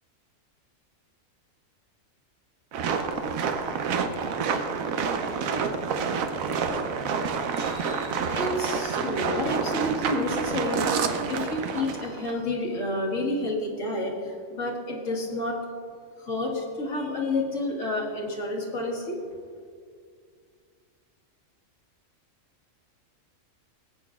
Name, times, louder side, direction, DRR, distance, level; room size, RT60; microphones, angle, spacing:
sound 1, 2.7-12.4, right 5 dB, 85° right, 1.1 m, -28 dB
voice 1, 7.5-10.8 11.3-15.6 16.2-19.2, left 2 dB, 70° left, -1 dB, 1.8 m, -30 dB
17.5 x 8.5 x 2.4 m, 2.1 s
omnidirectional pair, 1.4 m